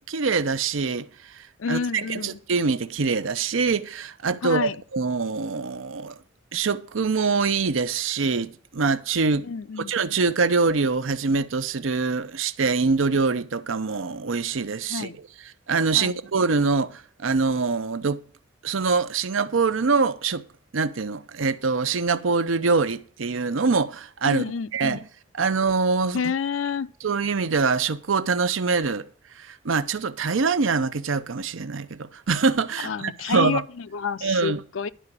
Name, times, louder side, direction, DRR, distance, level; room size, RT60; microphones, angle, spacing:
voice 1, 0.1-1.1 1.3-6.2 6.5-9.5 9.9-15.1 15.7-18.2 18.6-20.4 20.7-24.4 24.7-25.0 25.3-26.2 27.0-29.1 29.4-33.6 34.2-34.6, right 4 dB, 85° right, 0.7 m, -24 dB
voice 2, 1.6-2.4 4.4-4.8 9.4-9.9 14.9-15.2 15.9-16.2 24.2-25.0 26.1-26.9 32.8-34.9, left 6 dB, 90° left, 0.5 m, -29 dB
11.0 x 4.9 x 6.9 m
head